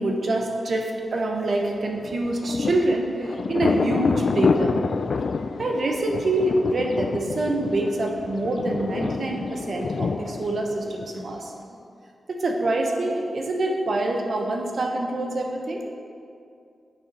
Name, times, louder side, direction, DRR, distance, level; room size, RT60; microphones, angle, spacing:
voice 1, 0.0-4.8 5.6-11.5 12.3-15.8, right 2 dB, 60° right, 1 dB, 0.9 m, -25 dB
Thunder, 2.0-11.5, left 4 dB, 65° left, 0.3 m, -28 dB
9.0 x 7.0 x 4.2 m, 2.4 s
cardioid pair, 75°, 0 cm